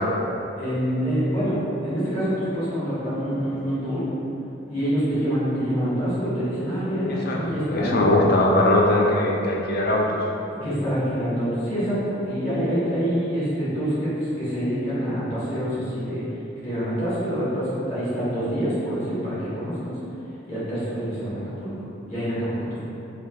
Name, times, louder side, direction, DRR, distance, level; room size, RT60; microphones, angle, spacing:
voice 1, 0.6-4.1 4.7-7.9 10.6-16.2 16.6-20.0 20.5-21.7 22.0-22.8, equal, 35° left, -12 dB, 1.3 m, -26 dB
voice 2, 6.9-10.2, left 1 dB, 55° left, -2 dB, 0.4 m, -21 dB
3.4 x 2.8 x 2.4 m, 2.9 s
head